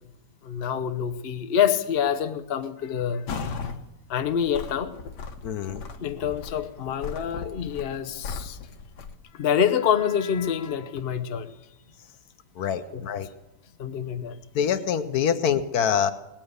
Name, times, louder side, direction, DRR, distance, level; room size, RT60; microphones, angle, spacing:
voice 1, 0.4-3.3 4.1-4.9 6.0-8.6 9.3-11.5 12.9-13.0 13.8-14.4, left 8 dB, 45° left, 8 dB, 0.9 m, -26 dB
sound 1, 3.3-3.8 4.2-9.2, left 5 dB, 85° left, 1.6 m, -37 dB
voice 2, 5.4-5.8 12.6-13.3 14.5-16.1, left 8 dB, 70° left, 11 dB, 1.2 m, -25 dB
19.0 x 8.8 x 8.1 m, 0.93 s
omnidirectional pair, 1.8 m